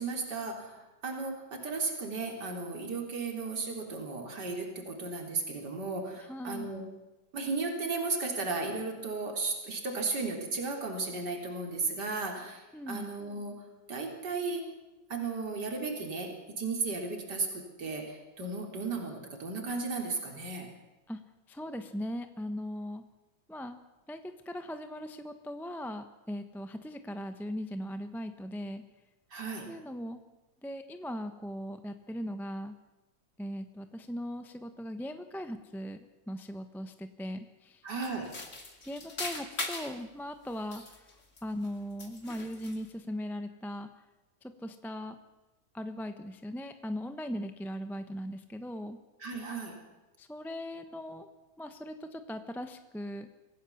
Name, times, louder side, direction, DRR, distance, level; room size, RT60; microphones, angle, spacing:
voice 1, 0.0-6.8 7.3-13.6 13.9-14.6 15.1-20.7 29.3-29.7 37.8-38.3 49.2-49.7, right 3 dB, 60° right, 2 dB, 4.1 m, -35 dB
voice 2, 6.3-6.7 12.7-13.1 21.1-21.2 21.5-23.0 23.5-23.8 24.1-28.8 29.7-30.2 30.6-32.7 33.4-36.0 36.3-37.8 38.8-40.8 41.4-43.9 44.4-45.2 45.7-49.0 50.2-51.3 51.6-53.3, equal, ahead, 8 dB, 0.6 m, -39 dB
sound 1, 38.0-40.0 40.5-41.7 42.0-42.9, left 2 dB, 40° left, 2.8 m, -40 dB
26.0 x 17.0 x 7.1 m, 1.1 s
omnidirectional pair, 2.1 m